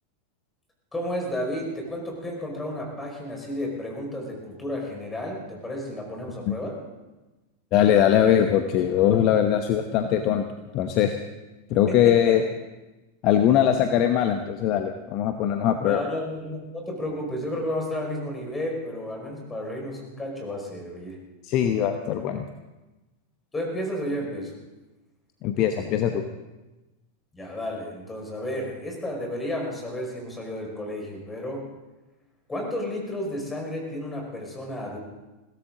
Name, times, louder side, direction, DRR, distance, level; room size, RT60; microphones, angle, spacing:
voice 1, 0.9-6.8 11.9-12.4 15.9-21.2 23.5-24.5 27.3-31.6 32.5-35.0, left 1 dB, 10° left, 0 dB, 5.3 m, -32 dB
voice 2, 7.7-10.4 10.7-11.2 11.7-12.4 13.2-16.0 21.4-22.4 25.4-26.2, left 10 dB, 40° left, 7 dB, 1.0 m, -21 dB
21.5 x 17.0 x 3.8 m, 1.1 s
figure-of-eight pair, 90°, 0 cm